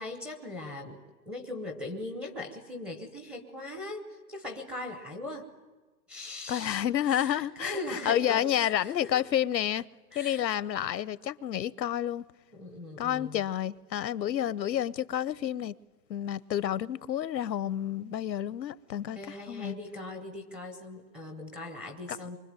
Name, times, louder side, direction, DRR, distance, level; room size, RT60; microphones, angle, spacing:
voice 1, 0.0-5.5 6.1-9.1 10.1-10.5 12.5-13.4 19.2-22.4, left 2 dB, ahead, 0.7 m, -40 dB
voice 2, 6.5-9.8 10.1-12.2 13.0-15.7 16.1-19.2 19.5-19.7, left 10 dB, 85° left, 1.0 m, -30 dB
24.0 x 24.0 x 9.1 m
hypercardioid pair, 160°, 50 cm